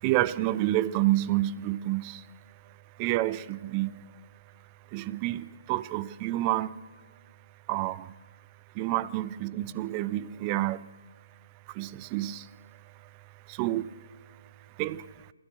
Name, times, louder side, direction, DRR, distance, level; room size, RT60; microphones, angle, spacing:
voice 1, 0.0-2.3 3.0-4.1 4.9-6.8 7.7-8.1 8.7-10.9 11.7-12.5 13.5-13.9 14.8-15.1, right 15 dB, 25° right, 0.6 m, -29 dB
27.5 x 14.5 x 6.6 m
figure-of-eight pair, 140°, 0 cm